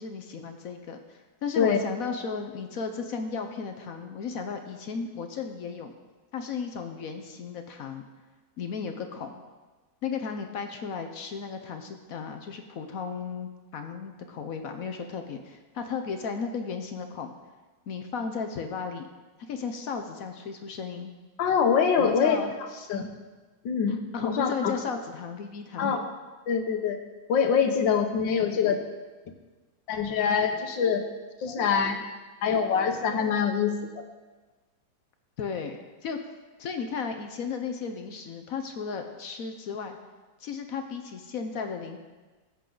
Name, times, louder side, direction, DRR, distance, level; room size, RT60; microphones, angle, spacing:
voice 1, 0.0-5.9 6.3-8.0 8.6-9.3 10.0-17.3 17.9-19.1 19.5-21.1 22.0-22.9 23.9-26.0 35.4-35.8 36.0-36.2 36.6-40.0 40.4-42.0, left 5 dB, 60° left, 6 dB, 1.0 m, -35 dB
voice 2, 21.4-22.4 22.9-23.1 23.7-24.7 25.8-26.0 26.5-27.0 27.3-28.8 29.9-31.0 31.4-32.1 32.4-33.8, left 6 dB, 90° left, 5 dB, 1.7 m, -24 dB
14.0 x 8.0 x 3.9 m, 1.3 s
omnidirectional pair, 2.0 m